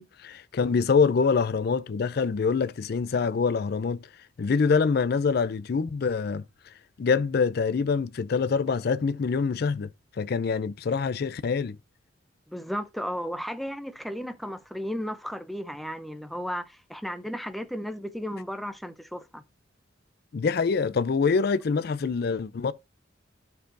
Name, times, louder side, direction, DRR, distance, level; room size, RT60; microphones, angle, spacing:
voice 1, 0.0-4.0 4.4-6.4 7.0-9.9 10.2-11.8 20.3-22.7, left 5 dB, 55° left, 0.4 m, -25 dB
voice 2, 12.5-19.4, equal, ahead, 0.5 m, -34 dB
13.0 x 4.8 x 2.6 m
head